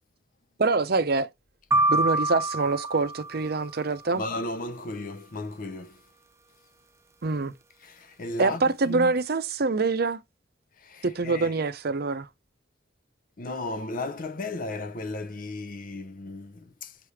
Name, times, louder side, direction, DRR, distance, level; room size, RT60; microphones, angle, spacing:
voice 1, 0.6-1.3 1.9-4.2 7.2-7.5 8.4-10.2 11.0-12.3, right 3 dB, 60° right, 0.7 m, -25 dB
sound 1, 1.7-3.8, right 2 dB, 15° right, 0.3 m, -26 dB
voice 2, 4.1-6.0 7.8-9.1 10.8-11.5 13.4-17.0, left 2 dB, 50° left, 0.7 m, -35 dB
6.7 x 3.3 x 4.8 m
head